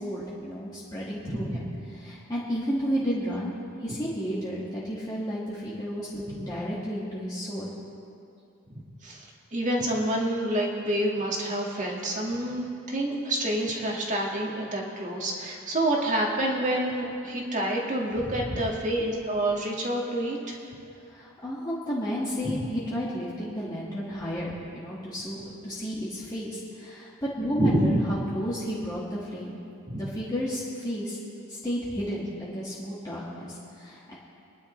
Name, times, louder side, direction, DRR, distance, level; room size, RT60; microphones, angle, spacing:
voice 1, 0.0-7.7 18.2-18.6 21.0-29.6 30.0-31.2 31.5-34.1, equal, 20° left, -8 dB, 1.9 m, -32 dB
voice 2, 1.3-1.7 6.3-6.4 9.0-20.6 22.4-22.7 27.6-28.0 29.9-30.1, right 1 dB, 35° right, -2 dB, 2.0 m, -28 dB
25.0 x 10.5 x 3.3 m, 2.6 s
head